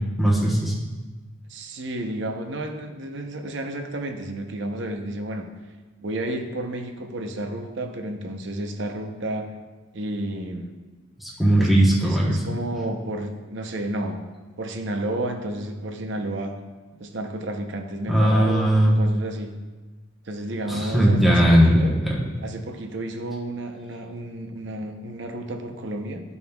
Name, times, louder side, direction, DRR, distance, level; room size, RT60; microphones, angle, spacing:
voice 1, 0.2-0.7 11.2-12.4 18.1-18.9 20.7-22.3, equal, ahead, -6 dB, 1.1 m, -18 dB
voice 2, 1.5-5.5 6.0-9.5 9.9-10.7 11.6-11.7 12.0-14.3 14.6-16.6 17.0-19.5 20.2-21.9 22.4-26.2, right 1 dB, 65° right, 4 dB, 0.8 m, -31 dB
13.0 x 5.4 x 2.3 m, 1.3 s
head